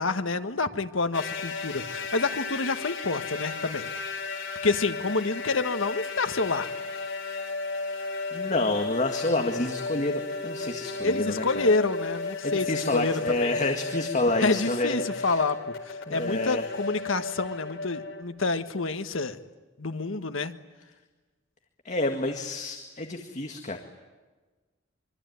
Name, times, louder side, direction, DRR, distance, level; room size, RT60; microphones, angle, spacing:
voice 1, 0.0-3.9 4.6-6.7 11.0-13.5 14.4-15.6 15.8-19.4 19.8-20.5, left 3 dB, 85° left, 8 dB, 1.6 m, -28 dB
sound 1, 1.1-18.2, left 3 dB, 70° left, 4.6 m, -34 dB
voice 2, 8.3-11.7 12.4-15.4 16.1-16.6 21.8-23.8, left 2 dB, 40° left, 4 dB, 1.9 m, -29 dB
25.5 x 24.5 x 9.5 m, 1.3 s
head